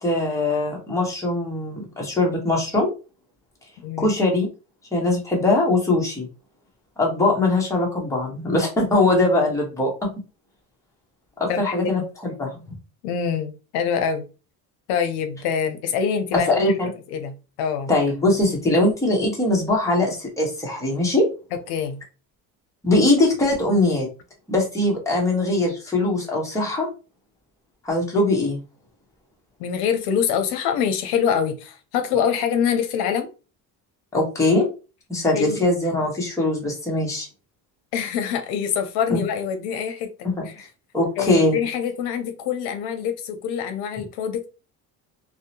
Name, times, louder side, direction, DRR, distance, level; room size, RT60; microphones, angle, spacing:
voice 1, 0.0-2.9 4.0-4.5 4.9-6.3 7.0-10.1 11.4-12.0 12.4-12.6 16.5-16.9 17.9-21.3 22.8-24.1 24.5-26.9 27.8-28.6 34.1-34.7 35.1-37.3 39.1-39.2 40.2-40.5 40.9-41.6, left 2 dB, 10° left, 0.8 m, -21 dB
voice 2, 11.5-12.1 13.0-14.2 14.9-16.6 17.1-17.9 21.7-22.0 29.6-33.3 35.3-35.6 37.9-40.1 40.4-40.7 41.2-44.5, left 7 dB, 80° left, 0.6 m, -25 dB
2.7 x 2.1 x 2.7 m
cardioid pair, 140°, 39 cm